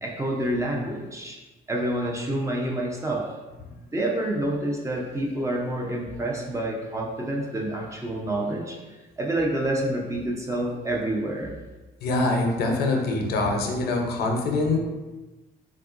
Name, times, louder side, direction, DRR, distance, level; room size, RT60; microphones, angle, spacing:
voice 1, 0.0-1.4 1.7-3.2 3.9-8.8 9.2-11.5, right 1 dB, 15° right, -1 dB, 0.5 m, -28 dB
voice 2, 12.0-14.8, left 2 dB, 70° left, 2 dB, 0.6 m, -24 dB
3.6 x 2.3 x 2.4 m, 1.2 s
cardioid pair, 110°, 17 cm